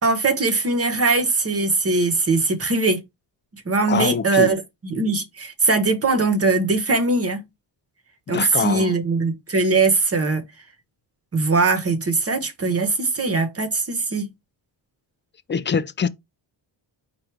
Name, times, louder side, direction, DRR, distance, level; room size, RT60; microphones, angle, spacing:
voice 1, 0.0-3.0 3.5-7.4 8.3-10.4 11.3-14.3, right 3 dB, 30° right, 1.0 m, -21 dB
voice 2, 3.9-4.5 8.3-9.0 15.5-16.1, left 6 dB, 25° left, 0.4 m, -24 dB
4.7 x 2.5 x 4.4 m
cardioid pair, 105°, 45 cm